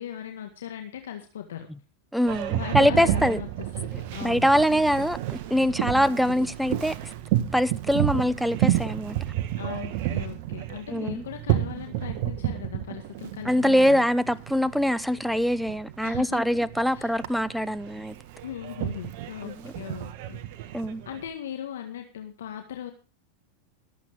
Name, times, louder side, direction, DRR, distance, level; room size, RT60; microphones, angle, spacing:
voice 1, 0.0-1.7 2.5-3.5 3.7-4.8 9.5-14.1 16.0-16.6 16.9-17.1 18.4-20.4 21.0-22.9, left 10 dB, 75° left, 1.7 m, -38 dB
voice 2, 2.1-3.4 3.9-7.1 7.5-9.2 10.9-11.2 13.4-18.2 19.6-19.7 20.7-21.0, equal, ahead, 0.9 m, -24 dB
Boat Water vehicle, 2.3-21.3, right 13 dB, 60° right, 1.5 m, -31 dB
23.0 x 8.4 x 3.6 m
hypercardioid pair, 100°, 0 cm